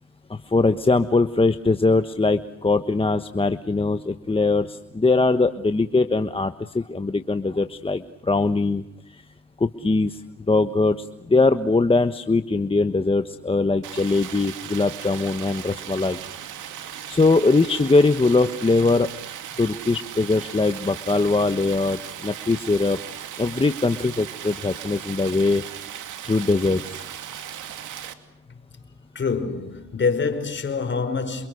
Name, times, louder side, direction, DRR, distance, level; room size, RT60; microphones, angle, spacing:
voice 1, 0.3-8.8 9.6-10.2 10.5-11.0 11.3-16.2 17.1-19.1 19.6-23.0 23.4-25.6 26.2-27.0, left 3 dB, 20° left, 1.2 m, -21 dB
Stream, 13.8-28.1, right 10 dB, 80° right, 2.7 m, -37 dB
voice 2, 29.2-31.5, left 5 dB, 40° left, 5.2 m, -25 dB
28.5 x 28.5 x 6.5 m
cardioid pair, 90°, 30 cm